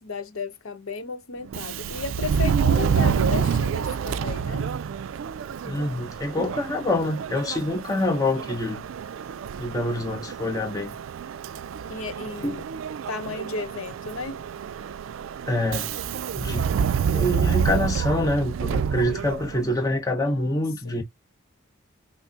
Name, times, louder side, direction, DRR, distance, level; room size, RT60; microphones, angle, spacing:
voice 1, 0.0-4.7 11.9-12.6 13.1-14.4 20.3-21.0, left 4 dB, 80° left, 0.8 m, -34 dB
Subway metro underground, 1.5-19.8, right 7 dB, 70° right, 0.3 m, -28 dB
voice 2, 5.6-8.9 9.6-11.0 12.4-12.6 15.5-16.0 16.3-16.8 17.1-21.0, left 1 dB, 15° left, 0.8 m, -26 dB
5.8 x 2.0 x 2.8 m
head